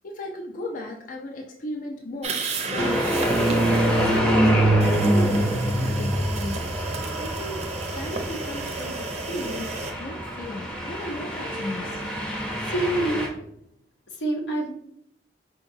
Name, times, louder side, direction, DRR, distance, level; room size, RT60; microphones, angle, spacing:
voice 1, 0.0-6.7 7.2-12.0, left 1 dB, 50° left, 1 dB, 0.4 m, -36 dB
sound 1, 2.2-4.2 4.8-9.9, right 3 dB, 40° right, 0.5 m, -32 dB
sound 2, 2.8-13.3, right 1 dB, 5° left, 0.6 m, -25 dB
voice 2, 12.6-13.4 14.2-14.7, right 1 dB, 85° left, 2 dB, 0.8 m, -26 dB
4.6 x 2.8 x 2.6 m, 0.73 s
head